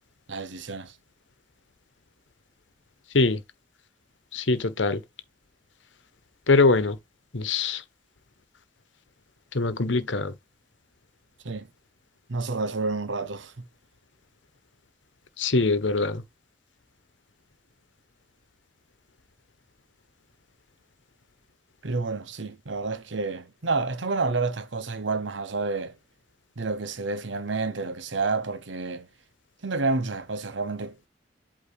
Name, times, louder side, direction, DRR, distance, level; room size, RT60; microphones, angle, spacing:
voice 1, 0.3-0.9 11.4-11.7 12.3-13.7 21.8-26.0 26.6-29.1 29.6-31.1, right 3 dB, 80° right, 0.9 m, -29 dB
voice 2, 4.3-5.0 6.5-7.0 7.3-7.8 9.5-10.3 15.4-16.2, left 3 dB, 85° left, 1.1 m, -22 dB
8.4 x 2.9 x 4.5 m
head